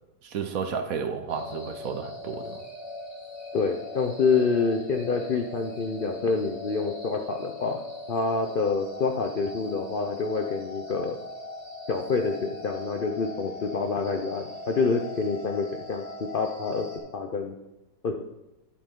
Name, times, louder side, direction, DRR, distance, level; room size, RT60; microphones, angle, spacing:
voice 1, 0.2-2.6, right 6 dB, 60° right, 6 dB, 1.1 m, -32 dB
sound 1, 1.3-17.0, left 2 dB, 20° left, 3.1 m, -40 dB
voice 2, 3.5-11.2 11.9-16.0 16.3-16.9 17.1-17.5 18.0-18.2, left 4 dB, 70° left, 4 dB, 0.5 m, -27 dB
11.0 x 8.4 x 3.7 m, 0.97 s
omnidirectional pair, 1.9 m